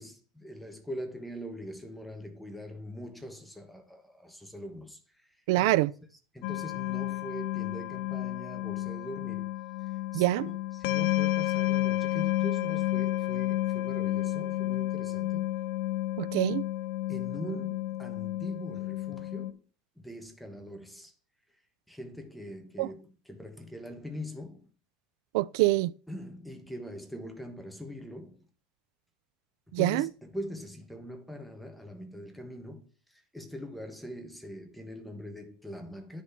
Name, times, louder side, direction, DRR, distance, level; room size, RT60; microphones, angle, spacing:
voice 1, 0.0-5.9 6.3-9.5 10.1-15.6 17.1-19.6 20.0-21.1 21.9-24.7 26.1-28.4 29.7-36.2, equal, ahead, 1.2 m, -42 dB
voice 2, 5.5-5.9 10.1-10.5 16.2-16.7 22.8-22.9 25.3-25.9 29.7-30.1, right 18 dB, 75° right, 0.4 m, -25 dB
sound 1, 6.4-19.5, left 16 dB, 65° left, 0.4 m, -31 dB
10.0 x 4.2 x 5.8 m
supercardioid pair, 145°, 2 cm